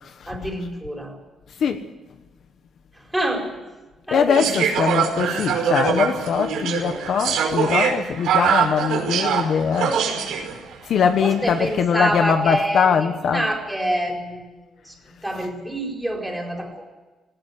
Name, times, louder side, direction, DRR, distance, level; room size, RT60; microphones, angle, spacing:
voice 1, 0.3-1.2 2.9-3.5 4.1-4.6 5.0-5.1 10.8-14.6 14.8-16.9, right 1 dB, 5° right, 4.7 m, -27 dB
voice 2, 4.1-10.0 10.8-13.4, left 7 dB, 55° left, 1.2 m, -22 dB
sound 1, 4.3-10.6 11.4-11.7, right 7 dB, 85° right, 5.3 m, -23 dB
19.0 x 18.0 x 9.9 m
cardioid pair, 165°, 0 cm